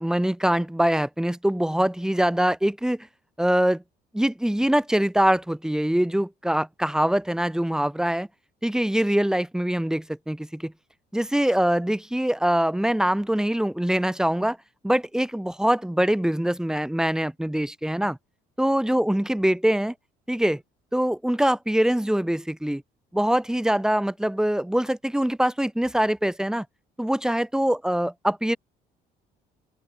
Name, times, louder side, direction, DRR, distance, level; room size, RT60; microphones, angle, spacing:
voice 1, 0.0-3.1 3.4-3.8 4.1-8.3 8.6-10.7 11.1-14.6 14.8-18.2 18.6-19.9 20.3-20.6 20.9-22.8 23.1-26.7 27.0-28.6, right 1 dB, 5° right, 2.6 m, -23 dB
open air
cardioid pair, 110°, 17 cm